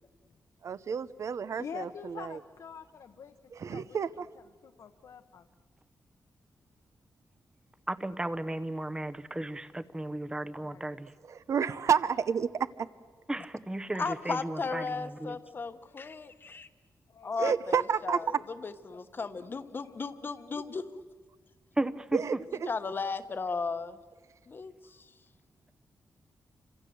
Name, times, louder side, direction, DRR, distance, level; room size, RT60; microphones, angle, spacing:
voice 1, 0.6-2.4 3.5-4.3 11.3-12.7 17.4-18.2 22.1-22.4 22.6-22.7, right 7 dB, 55° right, 16 dB, 0.7 m, -30 dB
voice 2, 1.6-3.3 3.6-4.3 4.6-5.5 10.6-10.8 14.8-15.6 15.9-16.0 17.1-17.3 18.2-18.4 18.9-20.6, left 7 dB, 70° left, 5 dB, 1.1 m, -47 dB
voice 3, 7.9-11.1 13.3-15.4 21.8-22.4, right 1 dB, 10° right, 13 dB, 0.9 m, -34 dB
voice 4, 14.0-16.7 17.2-18.3 18.6-20.8 22.6-24.0 24.5-25.1, left 4 dB, 35° left, 10 dB, 1.1 m, -35 dB
28.5 x 26.0 x 7.8 m, 1.5 s
wide cardioid pair, 175°, 6 cm